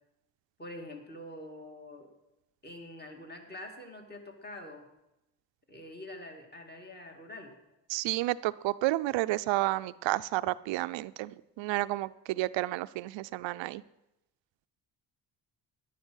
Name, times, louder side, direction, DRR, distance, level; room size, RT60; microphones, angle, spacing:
voice 1, 0.6-2.1 2.6-4.9 5.7-7.5, left 1 dB, 20° left, 3 dB, 2.5 m, -45 dB
voice 2, 7.9-13.8, right 17 dB, 80° right, 15 dB, 0.6 m, -31 dB
12.5 x 10.5 x 6.4 m, 0.90 s
cardioid pair, 85°, 44 cm